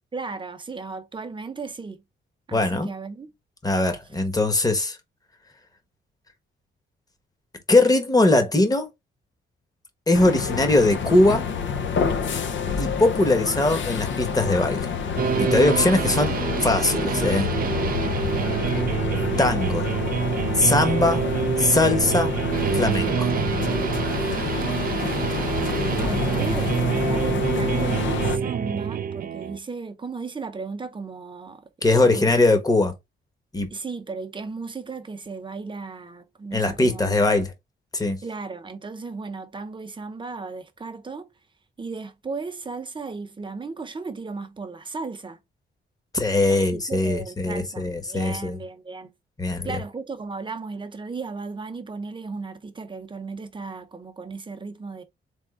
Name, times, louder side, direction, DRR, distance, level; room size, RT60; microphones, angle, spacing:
voice 1, 0.1-2.0 2.5-3.3 18.2-18.9 25.9-32.8 33.7-37.2 38.2-41.3 41.8-45.4 46.5-49.1 49.6-55.0, right 4 dB, 25° right, 0.8 m, -35 dB
voice 2, 2.5-2.9 3.6-5.0 7.7-8.9 10.1-11.5 12.8-14.9 15.4-16.3 16.6-17.5 19.4-19.9 20.6-21.2 21.6-22.3 22.7-23.3 31.8-32.9 33.5-33.7 36.5-37.5 37.9-38.2 46.1-48.6 49.4-49.8, left 2 dB, 15° left, 1.1 m, -21 dB
sound 1, 10.1-28.4, left 6 dB, 60° left, 0.7 m, -28 dB
sound 2, 15.2-29.6, right 8 dB, 45° right, 0.4 m, -26 dB
3.7 x 3.6 x 3.6 m
cardioid pair, 110°, 21 cm